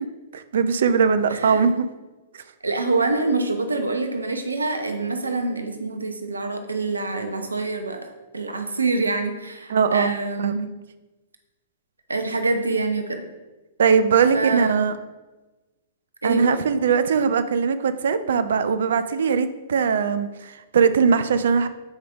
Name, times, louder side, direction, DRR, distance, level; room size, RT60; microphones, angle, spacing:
voice 1, 0.3-1.9 9.7-10.5 13.8-14.9 16.2-21.7, right 6 dB, 65° right, 12 dB, 0.5 m, -20 dB
voice 2, 2.6-8.0 8.3-10.6 12.1-13.2 14.3-14.9 16.2-16.6, right 3 dB, 85° right, 5 dB, 0.9 m, -25 dB
8.0 x 5.0 x 3.5 m, 1.1 s
figure-of-eight pair, 110°, 0 cm